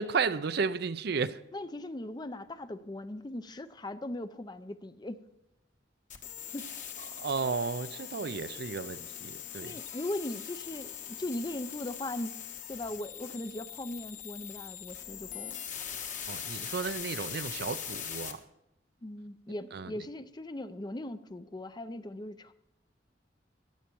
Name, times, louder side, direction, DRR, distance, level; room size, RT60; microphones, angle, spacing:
voice 1, 0.0-1.4 7.2-9.8 16.3-18.4 19.7-19.9, right 5 dB, 60° right, 0.5 m, -33 dB
voice 2, 1.5-5.2 6.5-6.7 9.6-12.4 12.7-15.6 19.0-22.5, left 1 dB, 25° left, 0.5 m, -39 dB
sound 1, 6.1-18.3, left 9 dB, 45° left, 1.3 m, -41 dB
15.5 x 10.5 x 4.6 m
head